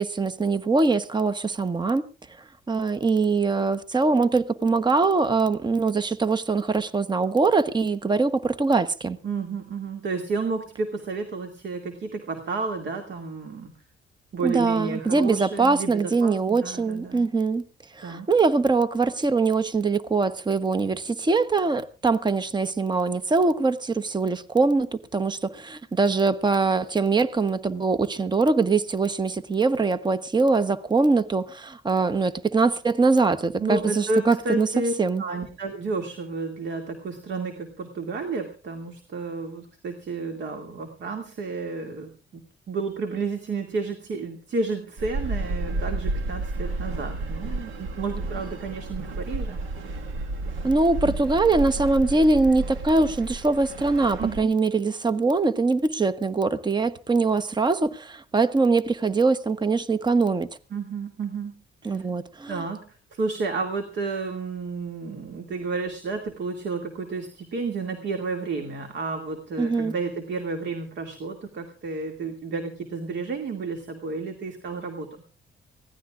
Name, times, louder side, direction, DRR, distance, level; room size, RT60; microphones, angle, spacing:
voice 1, 0.0-2.0 2.7-9.2 14.4-17.6 17.9-34.7 35.0-35.2 50.6-60.5 61.8-62.6 69.6-69.9, right 3 dB, 20° right, 1.0 m, -23 dB
voice 2, 9.2-13.7 14.3-17.3 18.0-18.3 33.6-42.4 42.7-49.6 51.0-51.1 54.2-54.5 60.7-61.6 61.8-62.1 62.5-62.8 63.1-75.1, right 4 dB, 65° right, 2.4 m, -31 dB
sound 1, 45.0-54.4, right 2 dB, 85° right, 1.9 m, -31 dB
24.0 x 16.5 x 2.5 m
cardioid pair, 90°, 20 cm